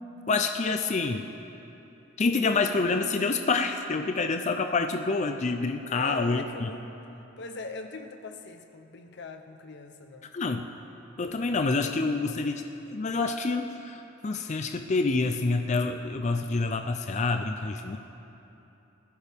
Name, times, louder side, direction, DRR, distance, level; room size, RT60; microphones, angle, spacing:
voice 1, 0.3-1.3 2.2-6.7 10.3-10.7 11.2-12.6 12.9-18.0, left 3 dB, 35° left, 6 dB, 0.5 m, -27 dB
voice 2, 5.9-6.8 7.4-10.3, left 3 dB, 55° left, 7 dB, 0.8 m, -41 dB
20.0 x 14.5 x 3.5 m, 3.0 s
head